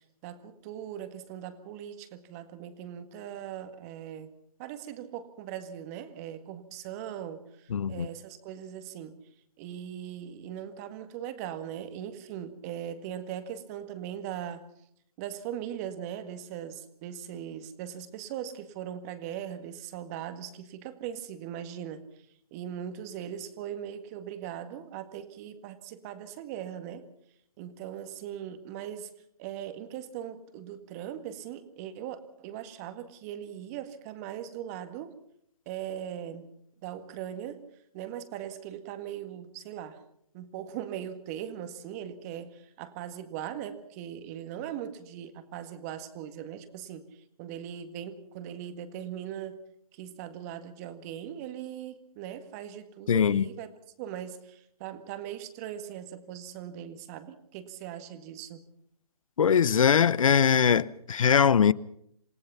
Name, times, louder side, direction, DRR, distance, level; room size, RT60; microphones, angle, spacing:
voice 1, 0.0-4.3 4.6-9.2 9.6-14.7 15.2-22.1 22.5-27.1 27.6-29.1 29.4-35.2 35.7-36.5 36.8-37.6 37.9-40.0 40.3-49.6 49.9-53.7 54.0-58.6, right 10 dB, 25° right, 1.8 m, -40 dB
voice 2, 7.7-8.1 53.1-53.5 59.4-61.7, left 7 dB, 60° left, 0.8 m, -21 dB
28.0 x 18.5 x 5.7 m
hypercardioid pair, 150°, 19 cm